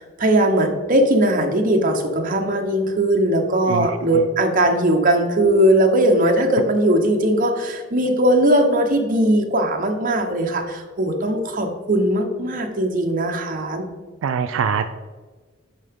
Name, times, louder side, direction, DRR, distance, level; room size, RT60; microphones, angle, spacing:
voice 1, 0.0-13.9, right 1 dB, 45° right, 3 dB, 0.9 m, -19 dB
voice 2, 14.2-14.8, right 6 dB, 75° right, 8 dB, 0.3 m, -22 dB
10.5 x 3.7 x 3.6 m, 1.4 s
head